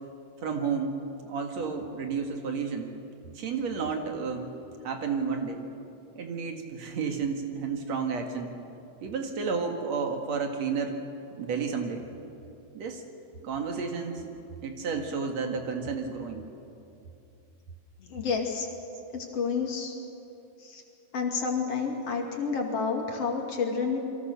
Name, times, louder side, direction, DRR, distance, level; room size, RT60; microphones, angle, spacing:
voice 1, 0.4-1.0 1.2-2.9 3.3-4.5 4.8-5.6 6.2-8.5 9.0-11.0 11.4-12.0 12.7-13.0 13.4-14.3 14.6-16.4, right 5 dB, 65° right, 4 dB, 3.0 m, -31 dB
voice 2, 18.0-18.7 19.1-19.9 20.6-20.8 21.1-24.0, left 5 dB, 55° left, 2 dB, 3.4 m, -30 dB
28.5 x 23.0 x 6.8 m, 2.7 s
omnidirectional pair, 3.3 m